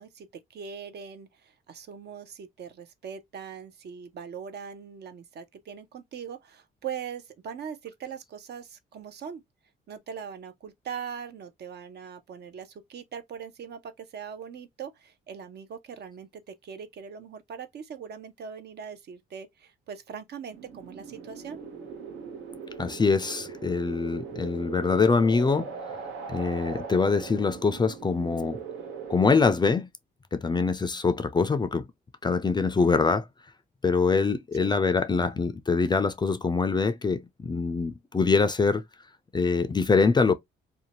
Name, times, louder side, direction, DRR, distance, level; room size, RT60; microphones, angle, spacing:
voice 1, 0.0-9.4 9.9-21.6 34.6-34.7, right 7 dB, 55° right, 0.6 m, -41 dB
sound 1, 20.5-29.3, right 5 dB, 85° right, 0.9 m, -39 dB
voice 2, 22.8-25.7 26.3-28.6 29.1-29.9 30.3-31.8 32.2-33.2 33.8-38.8 39.3-40.3, left 4 dB, 20° left, 0.4 m, -24 dB
2.6 x 2.2 x 2.8 m
cardioid pair, 90°, 20 cm